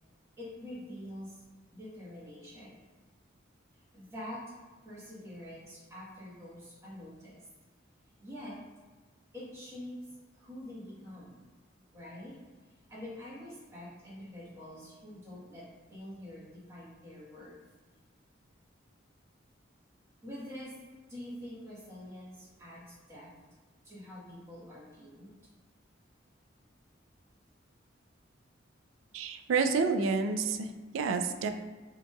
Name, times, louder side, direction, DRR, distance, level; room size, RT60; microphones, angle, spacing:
voice 1, 0.4-1.4 1.7-2.8 3.9-4.4 4.8-7.4 8.2-8.6 9.3-10.0 10.3-11.4 11.9-12.4 12.9-15.6 15.9-17.5 20.2-20.7 21.1-23.3 23.8-25.3, left 1 dB, 15° right, -8 dB, 1.2 m, -46 dB
voice 2, 29.1-31.5, right 4 dB, 90° right, 7 dB, 0.3 m, -29 dB
5.1 x 2.9 x 2.3 m, 1.4 s
head